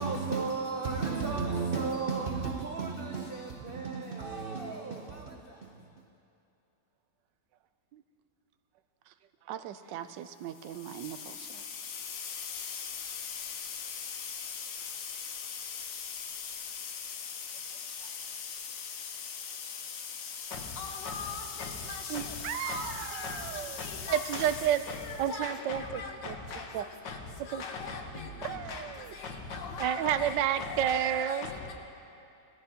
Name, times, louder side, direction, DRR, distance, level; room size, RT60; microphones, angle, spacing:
voice 1, 0.0-5.8, right 4 dB, 60° right, 1 dB, 0.5 m, -34 dB
voice 2, 9.5-11.6 22.1-23.8 24.1-24.8 25.2-26.4 26.7-26.8 27.5-27.6 28.4-29.1 29.8-31.5, right 10 dB, 85° right, 11 dB, 1.3 m, -32 dB
sound 1, 10.5-25.4, left 7 dB, 60° left, 1.0 m, -41 dB
voice 3, 20.5-31.7, left 4 dB, 85° left, 3 dB, 1.8 m, -40 dB
19.0 x 14.0 x 2.9 m, 2.8 s
omnidirectional pair, 1.9 m